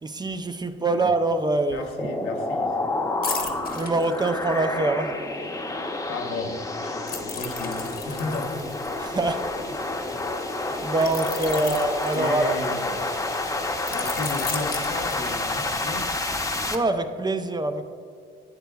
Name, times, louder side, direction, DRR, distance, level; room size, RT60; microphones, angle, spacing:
voice 1, 0.0-1.8 3.7-5.1 9.0-9.5 10.4-12.6 16.7-17.9, right 2 dB, 20° right, 8 dB, 0.5 m, -25 dB
voice 2, 1.7-2.9 6.1-8.8 9.6-9.7 11.5-11.8 12.1-13.2 13.9-16.1, left 2 dB, 90° left, 2 dB, 1.1 m, -34 dB
sound 1, 2.0-16.8, left 2 dB, 15° left, 0.8 m, -29 dB
sound 2, 3.2-4.8 7.1-9.8 11.0-12.9 13.9-15.7 16.1-16.3, left 6 dB, 50° left, 1.0 m, -36 dB
11.5 x 8.2 x 2.3 m, 2.3 s
cardioid pair, 90°, 20 cm